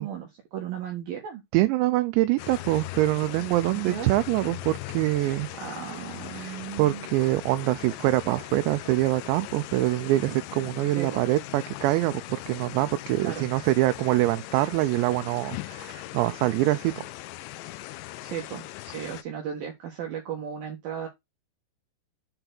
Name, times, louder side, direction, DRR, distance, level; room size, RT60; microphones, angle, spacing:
voice 1, 0.0-1.4 3.7-4.1 5.6-7.1 11.0-11.2 13.2-13.5 18.2-21.1, right 8 dB, 65° right, 2.7 m, -35 dB
voice 2, 1.5-5.5 6.3-12.2 12.5-17.1, right 17 dB, 85° right, 2.8 m, -25 dB
sound 1, 2.4-19.2, left 17 dB, 85° left, 2.9 m, -40 dB
7.8 x 4.4 x 3.9 m
omnidirectional pair, 5.1 m